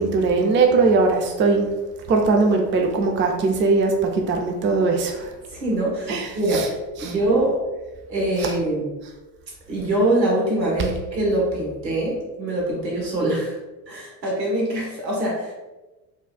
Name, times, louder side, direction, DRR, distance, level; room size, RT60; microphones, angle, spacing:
voice 1, 0.0-1.7 2.1-5.3 6.1-6.7 7.0-7.1, right 3 dB, 25° right, 3 dB, 0.5 m, -20 dB
voice 2, 5.5-7.6 8.1-9.0 9.7-13.6 13.9-15.5, right 1 dB, 90° right, -3 dB, 1.2 m, -23 dB
5.2 x 2.4 x 2.3 m, 1.1 s
hypercardioid pair, 75°, 50 cm